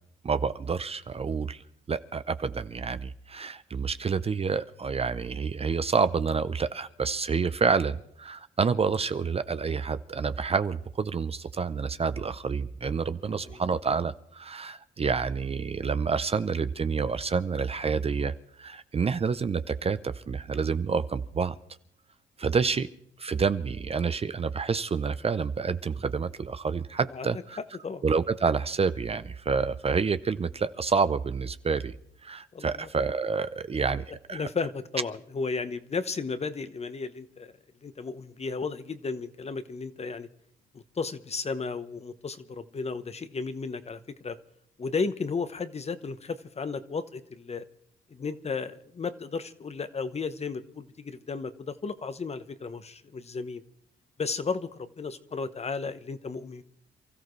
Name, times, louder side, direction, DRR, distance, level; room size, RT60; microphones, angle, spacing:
voice 1, 0.2-1.6 1.9-18.3 18.6-21.5 22.4-22.9 23.2-27.6 28.0-31.9 32.2-34.5, right 5 dB, 30° right, 13 dB, 0.6 m, -28 dB
voice 2, 13.3-13.6 27.1-27.3 27.8-28.0 32.5-32.9 34.1-37.5 37.8-40.3 40.7-44.4 44.8-47.6 48.1-53.6 54.2-56.6, left 4 dB, 30° left, 12 dB, 1.0 m, -34 dB
28.0 x 14.0 x 3.2 m, 0.72 s
cardioid pair, 90°, 20 cm